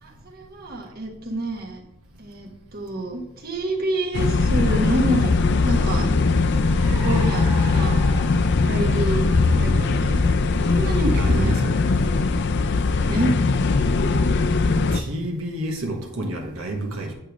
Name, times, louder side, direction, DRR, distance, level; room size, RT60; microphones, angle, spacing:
voice 1, 0.0-1.8 2.2-5.4 5.6-6.1 6.9-8.0 8.6-9.2 9.6-10.3 10.7-11.5 13.1-13.3, right 1 dB, 45° right, 1.4 m, -27 dB
sound 1, 4.1-15.0, left 3 dB, 55° left, 0.5 m, -20 dB
Car, 5.4-13.2, right 1 dB, 25° right, 1.6 m, -41 dB
voice 2, 11.0-11.8 14.9-17.1, right 1 dB, 90° right, 1.3 m, -29 dB
8.8 x 3.3 x 6.1 m
head